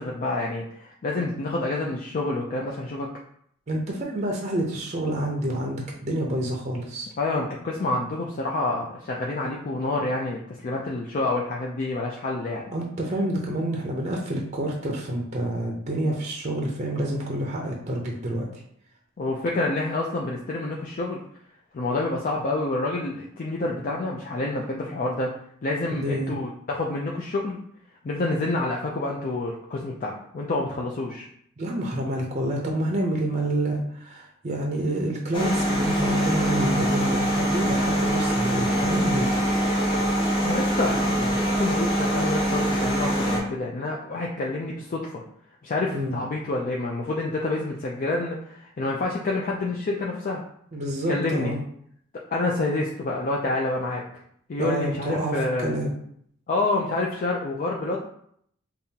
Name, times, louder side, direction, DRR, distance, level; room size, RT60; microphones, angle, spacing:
voice 1, 0.0-3.1 7.2-12.6 19.2-21.2 21.7-25.3 25.6-27.6 28.0-31.3 40.4-45.2 45.6-50.4 51.1-51.6 52.3-54.0 54.5-55.7 56.5-58.0, left 2 dB, 40° left, -2 dB, 0.4 m, -28 dB
voice 2, 3.7-7.1 12.7-18.6 25.9-26.3 31.6-39.3 45.9-46.2 50.7-51.6 54.6-55.9, right 1 dB, 35° right, 0 dB, 0.6 m, -28 dB
sound 1, 35.3-43.4, right 1 dB, 20° left, 0.9 m, -23 dB
5.4 x 2.3 x 2.8 m, 0.67 s
head